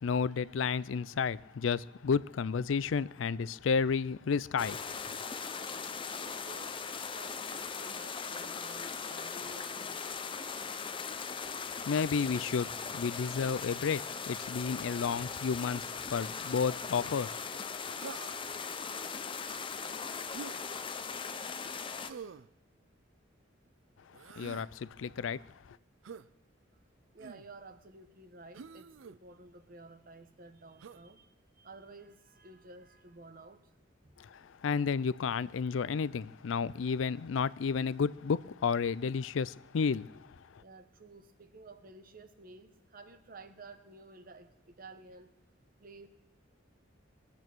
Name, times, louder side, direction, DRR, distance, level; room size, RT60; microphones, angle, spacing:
voice 1, 0.0-4.9 11.9-17.4 24.4-25.4 34.2-40.2, left 5 dB, 85° left, 0.4 m, -32 dB
sound 1, 4.6-22.1, left 5 dB, 25° left, 0.7 m, -39 dB
voice 2, 6.1-10.2 27.1-33.7 40.6-46.1, right 3 dB, 50° right, 1.1 m, -53 dB
Human voice, 18.0-18.6 20.3-20.6 22.1-22.5 24.1-24.7 26.0-26.3 27.2-27.5 28.5-29.2 30.8-31.0, right 5 dB, 85° right, 0.5 m, -46 dB
21.0 x 8.7 x 6.1 m
head